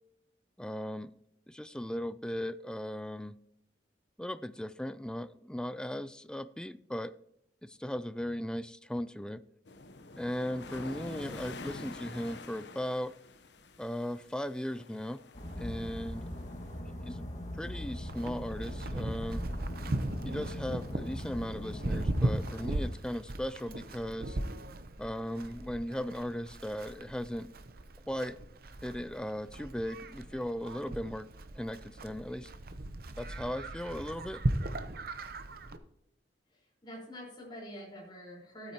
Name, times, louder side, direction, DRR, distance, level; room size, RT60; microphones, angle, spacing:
voice 1, 0.6-1.1 1.5-3.4 4.2-7.1 7.6-9.4 10.2-13.2 13.8-15.2 15.6-16.3 17.0-17.2 17.5-19.4 20.2-24.4 25.0-27.5 28.1-28.4 28.8-31.3 31.6-32.5 33.2-34.4, equal, 5° left, 0.3 m, -37 dB
sound 1, 9.7-16.8, left 3 dB, 70° left, 0.9 m, -47 dB
sound 2, 15.3-22.9, left 1 dB, 40° left, 1.8 m, -41 dB
Livestock farm animals working animals, 18.1-35.8, right 1 dB, 55° right, 0.7 m, -38 dB
voice 2, 36.5-38.7, equal, 25° left, 4.5 m, -46 dB
15.0 x 8.8 x 2.9 m
head